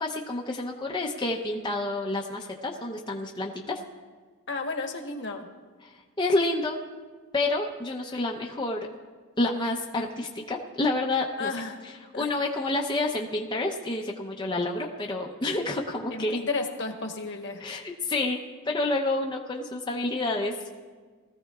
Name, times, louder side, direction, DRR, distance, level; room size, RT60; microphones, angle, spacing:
voice 1, 0.0-3.8 5.8-6.8 7.3-8.9 9.4-11.5 11.8-16.4 17.6-18.4 18.6-20.5, left 2 dB, 20° left, -1 dB, 0.7 m, -29 dB
voice 2, 4.5-5.5 11.4-11.8 12.1-12.3 16.1-17.6, left 3 dB, 55° left, 3 dB, 1.2 m, -32 dB
20.0 x 15.0 x 2.4 m, 1.5 s
head